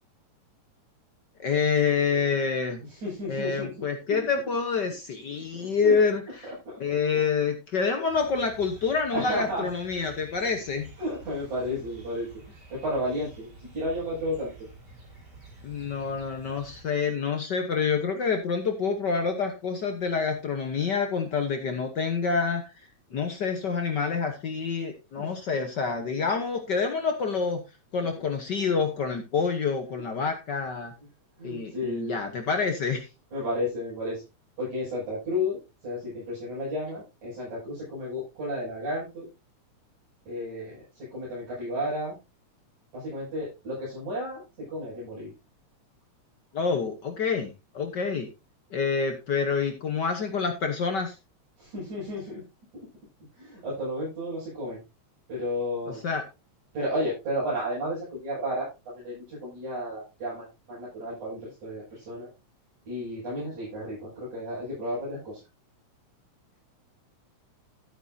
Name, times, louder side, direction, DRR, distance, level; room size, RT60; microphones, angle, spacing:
voice 1, 1.4-2.8 3.3-6.5 6.8-10.9 15.6-22.7 23.1-27.6 27.9-30.9 31.4-33.1 46.5-47.5 47.7-48.3 48.7-51.2 56.0-56.2, left 5 dB, 60° left, 6 dB, 1.1 m, -27 dB
voice 2, 2.9-4.2 5.5-6.0 6.6-7.2 9.1-9.7 11.0-14.5 25.2-25.3 31.4-32.2 33.3-34.3 34.6-39.3 40.3-42.2 42.9-45.3 51.6-52.5 52.7-52.9 53.4-54.8 55.3-56.0 56.7-62.3 62.9-65.4, left 1 dB, 85° right, -9 dB, 8.2 m, -33 dB
sound 1, 8.1-16.8, right 2 dB, 35° right, 3.8 m, -49 dB
13.0 x 9.2 x 2.7 m, 0.26 s
omnidirectional pair, 3.3 m